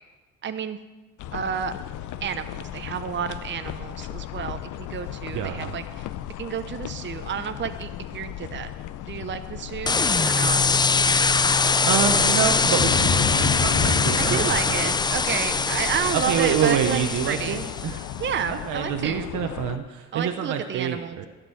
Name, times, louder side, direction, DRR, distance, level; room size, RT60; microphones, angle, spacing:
voice 1, 0.4-0.8 1.3-1.8 2.2-6.1 6.4-8.7 9.1-10.6 14.2-17.0 17.3-17.6 18.2-19.3 20.1-21.2, right 8 dB, 40° right, 9 dB, 0.7 m, -30 dB
sound 1, 1.2-19.8, left 12 dB, 80° left, 0.5 m, -36 dB
voice 2, 5.3-5.8 11.5-14.9 16.1-18.1 18.5-21.3, right 8 dB, 80° right, 5 dB, 0.9 m, -27 dB
sound 2, 9.9-18.1, left 4 dB, 15° left, 0.3 m, -22 dB
sound 3, 12.8-14.8 15.2-15.7, left 5 dB, 45° left, 0.9 m, -27 dB
12.5 x 5.3 x 7.6 m, 1.2 s
cardioid pair, 90°, 30 cm